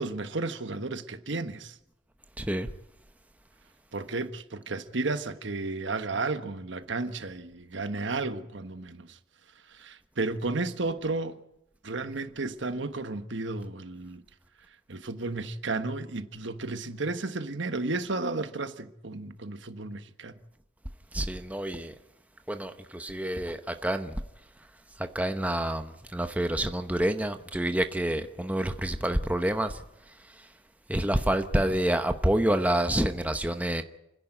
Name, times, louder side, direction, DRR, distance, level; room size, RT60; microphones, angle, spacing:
voice 1, 0.0-1.8 3.9-9.2 9.7-11.4 11.8-14.2 14.9-20.3, right 3 dB, 65° right, 1.3 m, -33 dB
voice 2, 2.4-2.7 21.1-21.9 22.5-24.1 25.1-25.9 26.1-29.7 30.9-33.8, right 1 dB, 5° right, 0.9 m, -27 dB
29.5 x 10.5 x 9.0 m
head